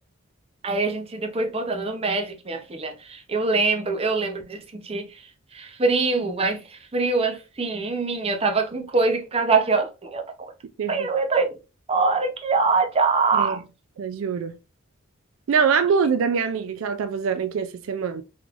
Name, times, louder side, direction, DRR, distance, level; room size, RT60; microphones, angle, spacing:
voice 1, 0.6-10.5 10.9-11.5 11.9-13.6, right 4 dB, 30° right, 0.6 m, -24 dB
voice 2, 14.0-14.6 15.5-18.2, right 6 dB, 75° right, 0.3 m, -24 dB
3.8 x 3.1 x 2.4 m
head